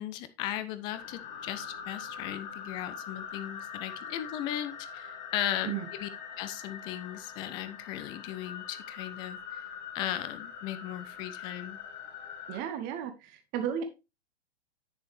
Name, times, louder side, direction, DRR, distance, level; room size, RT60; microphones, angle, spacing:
voice 1, 0.0-6.1 6.4-9.6 9.9-11.8, left 12 dB, 15° left, 12 dB, 0.4 m, -37 dB
sound 1, 0.9-12.6, left 7 dB, 40° left, 1.5 m, -43 dB
voice 2, 12.5-13.8, right 9 dB, 25° right, 7 dB, 0.9 m, -34 dB
8.8 x 6.8 x 3.1 m, 0.26 s
figure-of-eight pair, 110°, 34 cm